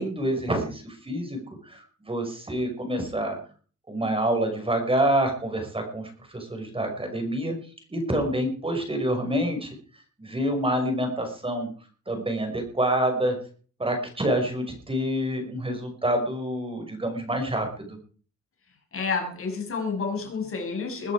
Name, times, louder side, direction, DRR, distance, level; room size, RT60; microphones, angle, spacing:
voice 1, 0.0-3.4 3.9-7.5 7.9-9.7 10.2-11.7 12.1-13.4 13.8-18.0, right 1 dB, 20° right, 4 dB, 5.6 m, -27 dB
voice 2, 18.9-21.1, left 4 dB, 45° left, 3 dB, 6.3 m, -29 dB
22.0 x 11.0 x 4.9 m, 0.42 s
cardioid pair, 90°, 30 cm